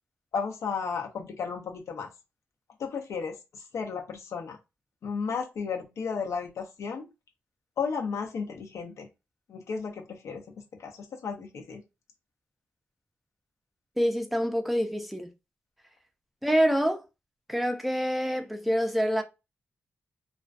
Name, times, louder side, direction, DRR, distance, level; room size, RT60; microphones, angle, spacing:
voice 1, 0.3-2.1 2.8-4.6 5.0-7.1 7.8-9.1 9.5-10.4 10.8-11.8, left 5 dB, 85° left, 0.5 m, -34 dB
voice 2, 14.0-15.3 16.4-17.0 17.5-19.2, equal, ahead, 0.4 m, -26 dB
2.4 x 2.2 x 2.3 m
wide cardioid pair, 130°, 5 cm